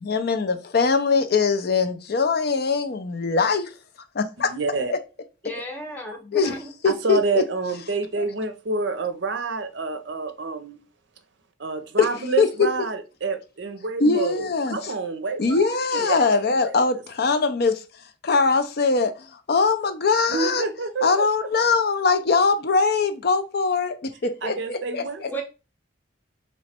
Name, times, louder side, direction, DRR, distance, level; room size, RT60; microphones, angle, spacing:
voice 1, 0.0-3.7 4.1-4.5 4.9-5.0 6.3-6.6 6.8-7.4 12.0-12.1 12.4-12.5 14.0-14.9 15.4-17.8 18.2-20.6 21.0-25.0, left 4 dB, 55° left, 0.5 m, -22 dB
voice 2, 4.5-4.9 6.9-10.8 11.6-16.3 16.6-16.7 20.3-21.3 24.2-25.4, right 3 dB, 60° right, 0.6 m, -28 dB
voice 3, 5.4-6.7 25.3-25.4, equal, 10° left, 0.8 m, -34 dB
3.1 x 3.1 x 4.3 m
head